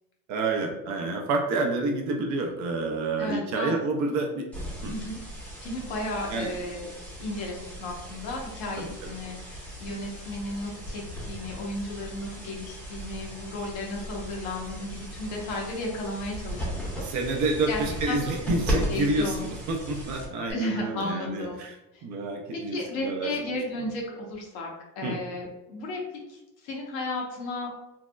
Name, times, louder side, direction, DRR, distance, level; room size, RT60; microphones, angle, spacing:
voice 1, 0.3-4.5 4.8-4.9 6.3-6.5 8.8-8.9 17.0-21.7 22.0-23.3 25.0-25.2, right 2 dB, 40° right, 2 dB, 0.5 m, -28 dB
voice 2, 3.2-3.7 4.8-5.2 5.6-6.9 7.2-17.1 17.7-18.2 18.5-18.6 18.8-19.5 20.5-21.6 21.9-22.0 22.5-24.7 25.0-26.0 26.3-27.8, left 2 dB, 70° left, -1 dB, 1.0 m, -34 dB
sound 1, 4.5-20.5, equal, 5° left, 0.7 m, -37 dB
3.4 x 2.0 x 2.2 m, 0.96 s
supercardioid pair, 100°, 44 cm